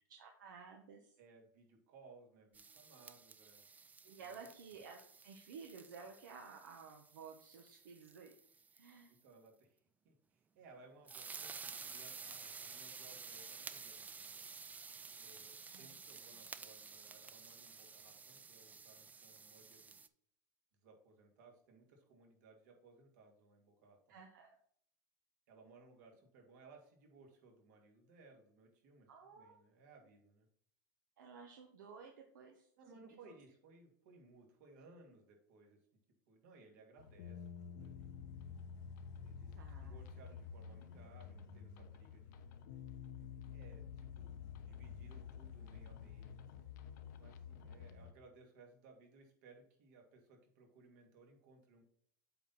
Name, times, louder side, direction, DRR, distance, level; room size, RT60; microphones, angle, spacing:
voice 1, 0.1-1.1 4.0-8.3 8.7-9.2 15.7-16.0 16.3-16.4 24.1-24.5 29.1-29.6 31.2-33.2 39.6-40.0, right 5 dB, 90° right, 2 dB, 1.1 m, -54 dB
voice 2, 1.2-3.6 4.2-4.5 9.1-9.8 10.0-14.5 15.2-20.0 20.8-24.2 25.5-30.5 32.8-35.8 36.3-38.1 39.2-42.3 43.5-44.3 44.6-46.7 47.2-51.8, right 3 dB, 70° right, 1 dB, 2.3 m, -62 dB
sound 1, 2.5-8.9 11.1-20.1, right 5 dB, 15° right, 0.4 m, -52 dB
sound 2, 37.0-48.1, left 7 dB, 70° left, 0.8 m, -50 dB
8.2 x 4.3 x 4.2 m, 0.63 s
supercardioid pair, 120°, 10 cm